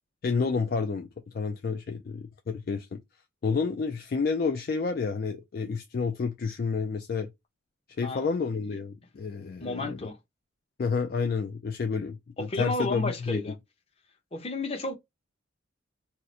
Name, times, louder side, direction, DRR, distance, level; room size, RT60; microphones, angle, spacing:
voice 1, 0.2-1.1 1.3-3.0 3.4-7.3 8.0-10.1 10.8-13.4, left 5 dB, 45° left, 0.3 m, -30 dB
voice 2, 9.6-10.2 12.4-13.5 14.3-14.9, left 2 dB, 30° left, 0.7 m, -32 dB
2.8 x 2.4 x 4.0 m
head